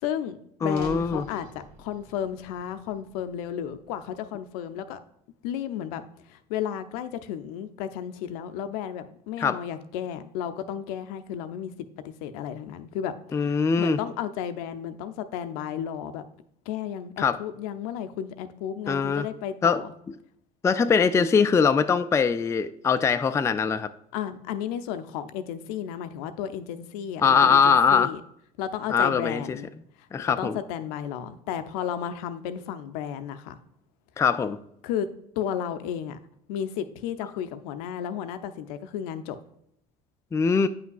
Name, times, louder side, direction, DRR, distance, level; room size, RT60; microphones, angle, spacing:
voice 1, 0.0-1.5 1.8-5.0 5.4-6.0 6.3-11.7 12.0-16.2 16.7-19.9 24.1-28.2 28.6-29.7 30.2-33.6 34.8-35.1 35.4-36.2 36.5-39.4, left 9 dB, 70° left, 11 dB, 0.5 m, -33 dB
voice 2, 0.6-1.3 9.4-9.6 13.3-14.0 17.2-17.4 18.9-19.3 19.6-19.8 20.6-23.9 27.2-28.1 28.9-29.4 30.1-30.6 34.2-34.6 40.3-40.7, left 6 dB, 15° left, 10 dB, 0.3 m, -22 dB
sound 1, 0.7-5.0, right 1 dB, 45° right, 1.1 m, -49 dB
9.2 x 5.8 x 2.3 m, 0.72 s
hypercardioid pair, 60°, 20 cm